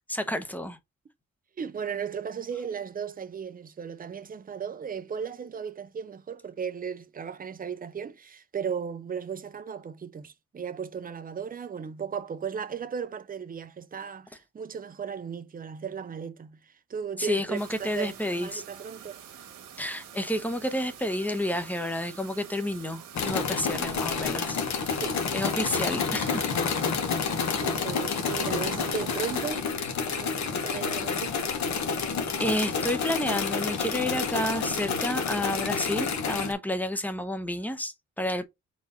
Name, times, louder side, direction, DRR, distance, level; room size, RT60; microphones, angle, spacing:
voice 1, 0.1-0.8 17.2-18.6 19.8-24.6 25.3-26.5 32.4-38.4, left 1 dB, 5° left, 0.9 m, -30 dB
voice 2, 1.6-19.2 23.7-24.0 25.0-25.2 27.6-29.7 30.0-31.5, right 7 dB, 25° right, 0.7 m, -36 dB
sound 1, 17.5-29.5, right 8 dB, 70° right, 1.5 m, -47 dB
sound 2, 23.1-36.5, left 5 dB, 60° left, 1.2 m, -29 dB
4.7 x 3.9 x 5.2 m
wide cardioid pair, 170°, 32 cm